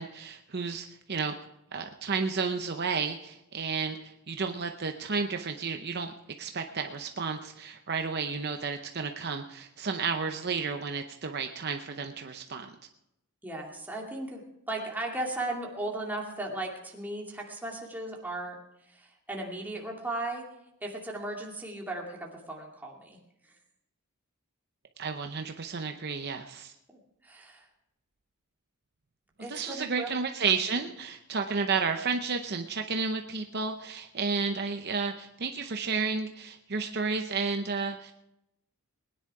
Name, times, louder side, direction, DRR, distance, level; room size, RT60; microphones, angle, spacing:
voice 1, 0.0-1.3 1.7-6.1 6.4-12.7 25.0-26.7 29.5-38.1, right 5 dB, 50° right, 5 dB, 0.7 m, -32 dB
voice 2, 13.4-20.4 20.8-23.2 23.4-23.5 26.9-27.7 29.4-30.2, right 2 dB, 10° right, -2 dB, 2.4 m, -37 dB
20.5 x 10.0 x 4.8 m, 0.83 s
head